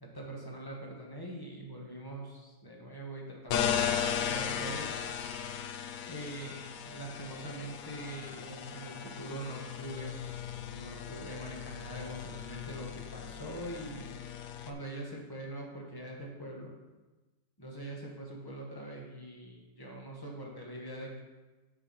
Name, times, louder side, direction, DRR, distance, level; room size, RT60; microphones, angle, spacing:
voice 1, 0.1-5.2 6.1-10.2 10.7-14.1 14.6-16.7 17.6-21.2, right 1 dB, 15° left, -1 dB, 1.0 m, -43 dB
sound 1, 3.5-14.7, left 8 dB, 70° left, 0.8 m, -37 dB
7.3 x 5.6 x 4.2 m, 1.2 s
omnidirectional pair, 1.9 m